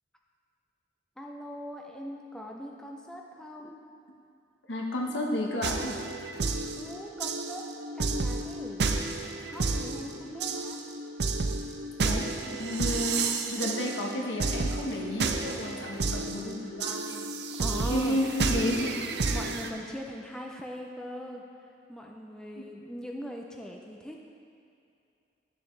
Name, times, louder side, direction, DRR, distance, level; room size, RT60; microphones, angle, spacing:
voice 1, 1.2-3.8 6.8-7.7 8.0-8.8 9.4-10.8 17.6-18.2 19.3-21.4 21.9-24.3, equal, 5° left, 0 dB, 0.4 m, -40 dB
voice 2, 4.7-6.0 10.1-10.3 12.0-17.2 17.9-19.0 22.6-22.7, left 1 dB, 75° left, -1 dB, 1.1 m, -32 dB
sound 1, 5.6-19.7, right 3 dB, 60° right, 0.5 m, -31 dB
11.0 x 7.0 x 3.2 m, 2.5 s
head